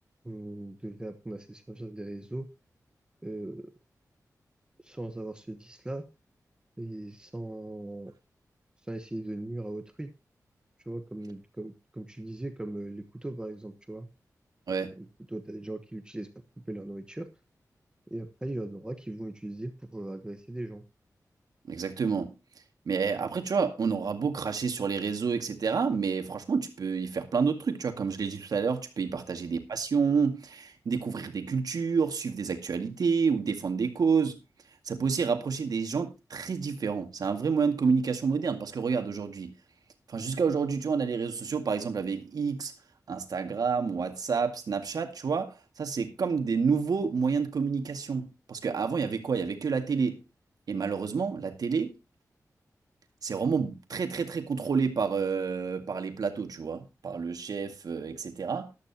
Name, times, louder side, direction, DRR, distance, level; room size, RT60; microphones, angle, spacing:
voice 1, 0.2-2.5 3.2-3.7 4.8-6.1 6.8-8.1 8.9-10.1 10.8-14.1 15.0-16.3 16.7-17.3 18.1-20.8, right 1 dB, 15° right, 1.2 m, -38 dB
voice 2, 21.7-22.4 22.9-34.4 34.9-39.5 40.1-42.7 43.1-50.2 50.7-52.0 53.2-58.7, right 5 dB, 80° right, 2.0 m, -29 dB
14.0 x 12.0 x 2.9 m
wide cardioid pair, 155°, 6 cm